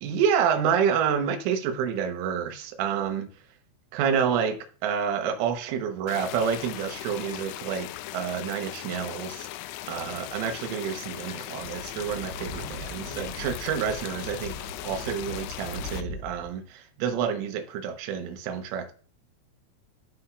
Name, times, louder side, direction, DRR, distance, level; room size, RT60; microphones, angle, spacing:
voice 1, 0.0-3.3 3.9-9.5 9.9-14.5 14.8-18.9, right 7 dB, 75° right, 3.5 m, -28 dB
sound 1, 6.1-16.0, left 14 dB, 85° left, 3.1 m, -38 dB
Speech / Wind, 11.6-16.5, left 1 dB, 50° right, 1.8 m, -40 dB
14.5 x 4.9 x 2.4 m
omnidirectional pair, 5.9 m